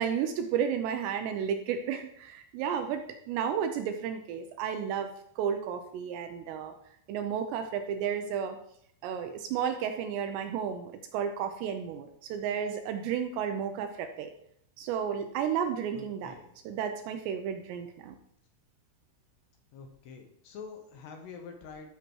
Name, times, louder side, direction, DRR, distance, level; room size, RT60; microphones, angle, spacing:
voice 1, 0.0-6.7 7.1-8.6 9.0-14.3 14.8-16.4 16.7-18.2, right 8 dB, 80° right, 7 dB, 2.6 m, -32 dB
voice 2, 15.9-16.5 19.7-21.9, left 5 dB, 75° left, 3 dB, 2.8 m, -46 dB
13.0 x 6.6 x 3.1 m, 0.69 s
omnidirectional pair, 5.3 m